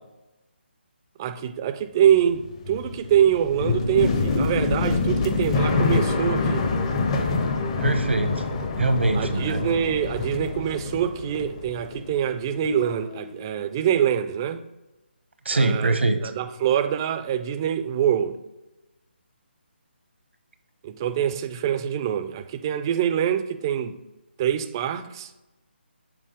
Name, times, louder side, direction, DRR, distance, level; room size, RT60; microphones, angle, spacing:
voice 1, 1.2-6.7 9.1-14.6 15.5-18.4 20.8-24.0 24.4-25.3, right 9 dB, 20° right, 0.3 m, -24 dB
sound 1, 2.2-12.3 12.5-13.4, left 4 dB, 30° left, 0.6 m, -26 dB
voice 2, 7.8-8.4 8.8-9.6 15.4-16.2, right 3 dB, 85° right, 0.8 m, -23 dB
6.7 x 3.5 x 4.8 m
figure-of-eight pair, 155°, 6 cm